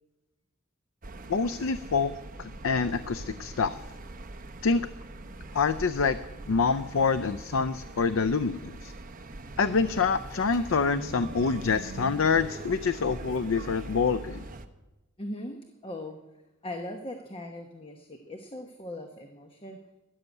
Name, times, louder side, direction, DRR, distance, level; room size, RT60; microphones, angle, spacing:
sound 1, 1.0-14.7, right 2 dB, 40° right, 0.9 m, -42 dB
voice 1, 1.3-3.8 4.6-4.8 5.5-6.2 6.5-8.9 9.6-14.4, left 5 dB, 65° left, 13 dB, 0.5 m, -26 dB
voice 2, 15.2-16.2 16.6-19.8, left 1 dB, 25° left, 5 dB, 1.0 m, -39 dB
13.0 x 11.0 x 8.3 m, 1.0 s
head